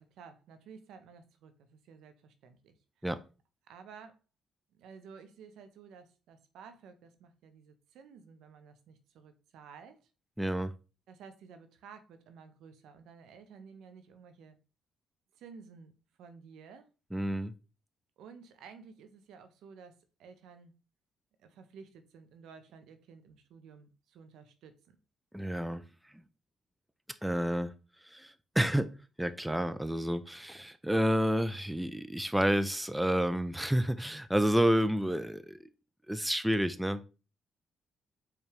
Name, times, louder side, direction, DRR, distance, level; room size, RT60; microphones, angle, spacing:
voice 1, 0.0-3.1 3.7-4.2 4.7-10.1 11.1-14.6 15.3-15.9 16.2-16.9 18.2-20.7 21.4-25.0, right 6 dB, 75° right, 0.5 m, -53 dB
voice 2, 10.4-10.7 17.1-17.5 25.3-25.8 27.2-27.7 28.0-28.9 29.2-35.6 36.1-37.0, equal, 5° right, 0.4 m, -29 dB
4.7 x 2.3 x 3.2 m
hypercardioid pair, 55°, 0 cm